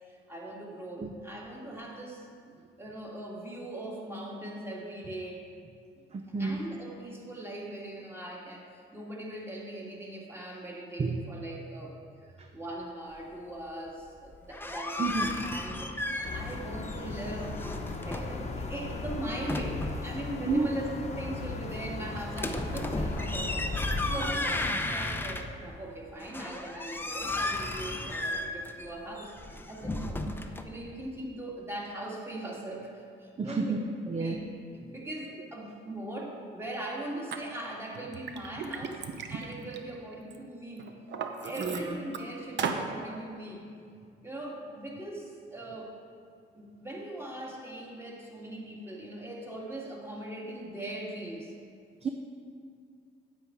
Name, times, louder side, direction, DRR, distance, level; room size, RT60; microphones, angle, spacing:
voice 1, 0.3-2.3 2.8-5.5 6.4-11.9 12.2-20.9 21.2-23.6 24.0-30.2 30.6-33.8 34.1-34.4 34.9-39.0 39.3-40.9 41.4-43.6 44.2-45.9 46.5-51.5, right 1 dB, 10° right, -3 dB, 2.3 m, -40 dB
voice 2, 6.1-6.6 11.0-11.2 12.4-12.5 15.0-15.4 20.5-20.7 33.4-33.8 34.1-34.4 41.6-42.0 52.0-52.1, right 4 dB, 35° right, 4 dB, 0.7 m, -30 dB
sound 1, 14.3-16.6 16.8-18.4 18.9-20.1 22.3-25.8 26.2-30.6, left 2 dB, 10° left, 0.7 m, -34 dB
sound 2, 16.2-24.7, left 3 dB, 35° left, 1.0 m, -38 dB
Liquid, 37.3-37.4 37.9-40.4 40.8-42.2 42.6-42.9, right 6 dB, 65° right, 0.8 m, -36 dB
9.3 x 8.5 x 4.7 m, 2.3 s
cardioid pair, 90°, 20 cm